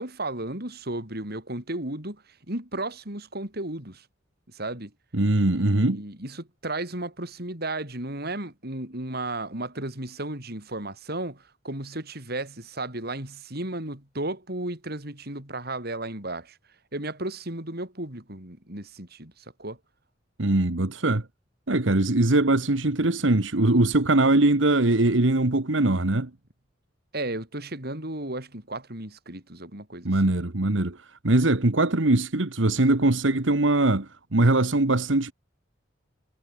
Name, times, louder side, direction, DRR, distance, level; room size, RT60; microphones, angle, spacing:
voice 1, 0.0-4.1 4.5-4.9 5.5-16.6 16.9-19.8 27.1-30.1, right 2 dB, 55° right, 6.3 m, -34 dB
voice 2, 5.1-6.0 20.4-21.3 21.7-26.3 30.1-35.3, right 2 dB, 80° right, 1.6 m, -22 dB
head